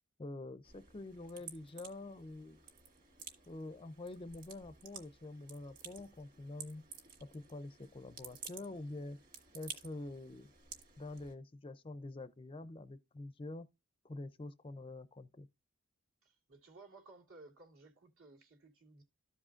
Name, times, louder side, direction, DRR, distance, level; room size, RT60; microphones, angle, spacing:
voice 1, 0.2-2.6 3.5-6.8 7.2-9.2 9.5-10.5 11.0-13.7 14.0-15.5, left 2 dB, 25° left, 0.4 m, -46 dB
sound 1, 0.6-11.3, right 7 dB, 40° right, 1.8 m, -53 dB
voice 2, 16.2-19.0, right 3 dB, 70° right, 2.1 m, -58 dB
13.5 x 4.9 x 2.5 m
head